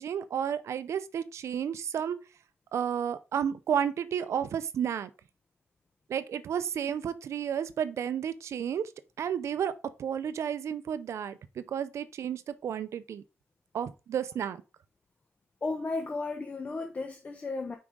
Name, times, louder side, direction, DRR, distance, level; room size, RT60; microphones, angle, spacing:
voice 1, 0.0-2.2 2.7-5.1 6.1-8.9 9.2-9.7 10.0-13.2 13.7-14.6, right 8 dB, 70° right, 0.6 m, -32 dB
voice 2, 15.6-17.8, left 3 dB, 30° left, 0.8 m, -34 dB
6.1 x 5.1 x 3.7 m
cardioid pair, 120°, 5 cm